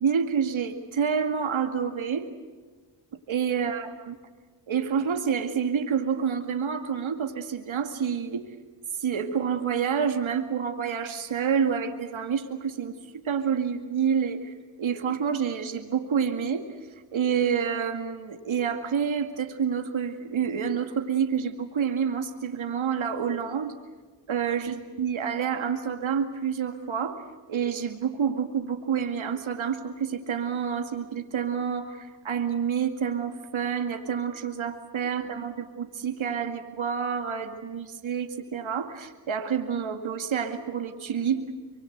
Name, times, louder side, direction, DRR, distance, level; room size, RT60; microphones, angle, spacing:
voice 1, 0.0-2.3 3.3-4.1 4.7-8.4 9.0-14.5 14.8-16.6 17.1-23.7 24.3-27.2 27.5-41.5, right 7 dB, 80° right, 7 dB, 2.2 m, -28 dB
24.5 x 24.0 x 8.0 m, 1.4 s
cardioid pair, 45°, 47 cm